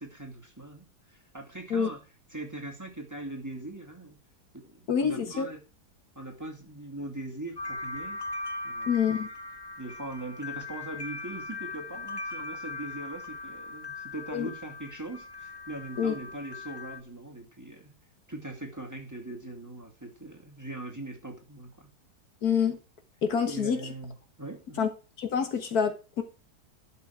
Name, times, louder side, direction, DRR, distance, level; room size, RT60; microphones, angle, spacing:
voice 1, 0.0-2.0 2.3-4.2 4.5-5.6 6.1-8.2 8.6-9.1 9.8-17.9 18.3-21.9 23.5-24.9, right 2 dB, 10° right, 2.4 m, -41 dB
voice 2, 4.9-5.5 8.9-9.3 14.3-14.5 16.0-16.2 22.4-22.8 23.2-23.8 24.8-24.9 25.2-26.2, left 7 dB, 65° left, 1.8 m, -26 dB
sound 1, 7.6-17.0, left 2 dB, 25° left, 0.5 m, -39 dB
11.5 x 5.9 x 4.8 m
omnidirectional pair, 1.7 m